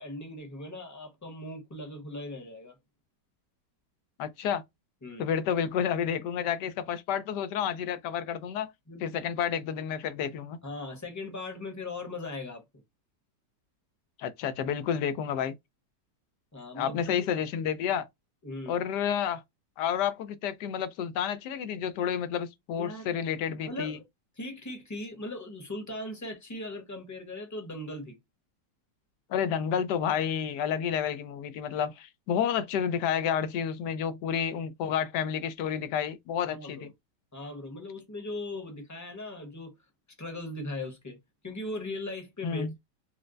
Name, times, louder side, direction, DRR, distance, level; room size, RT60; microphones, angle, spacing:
voice 1, 0.0-2.8 5.0-5.3 8.9-9.2 10.6-12.6 16.5-17.1 18.4-18.8 22.7-23.1 23.7-24.0 24.4-28.2 36.5-36.9 37.3-39.7 40.2-41.2 41.4-42.8, left 2 dB, 15° left, 0.8 m, -39 dB
voice 2, 4.2-4.6 5.2-8.7 9.0-10.6 14.2-15.5 16.8-18.1 18.7-19.4 19.8-24.0 29.3-36.9 42.4-42.7, left 8 dB, 75° left, 1.2 m, -30 dB
4.4 x 2.0 x 2.5 m
omnidirectional pair, 1.9 m